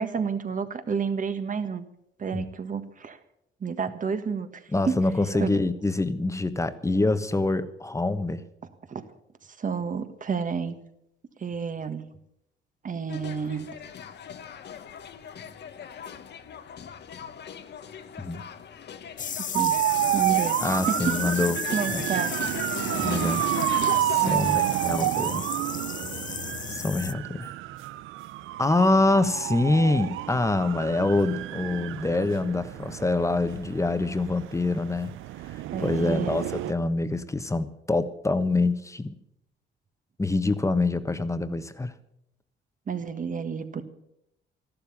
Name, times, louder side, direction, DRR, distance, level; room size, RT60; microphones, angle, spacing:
voice 1, 0.0-1.8 2.2-3.2 3.6-4.9 5.3-5.5 8.9-9.0 9.5-10.8 11.4-12.0 12.8-13.7 19.4-19.8 20.1-20.6 20.9-21.2 21.7-22.4 24.2-24.6 35.7-36.3 42.9-43.8, right 6 dB, 40° right, 10 dB, 1.5 m, -30 dB
voice 2, 4.7-8.4 18.2-18.4 20.6-21.6 21.9-22.0 23.0-23.5 24.0-25.4 26.7-27.5 28.6-35.1 35.4-39.1 40.2-41.9, left 2 dB, 15° left, 11 dB, 1.1 m, -25 dB
sound 1, 13.1-24.4, left 7 dB, 60° left, 1.2 m, -39 dB
sound 2, 19.2-27.1, left 8 dB, 40° left, 0.7 m, -35 dB
sound 3, 19.5-36.7, right 15 dB, 85° right, 0.5 m, -29 dB
13.5 x 12.0 x 7.1 m, 0.78 s
cardioid pair, 90°, 20 cm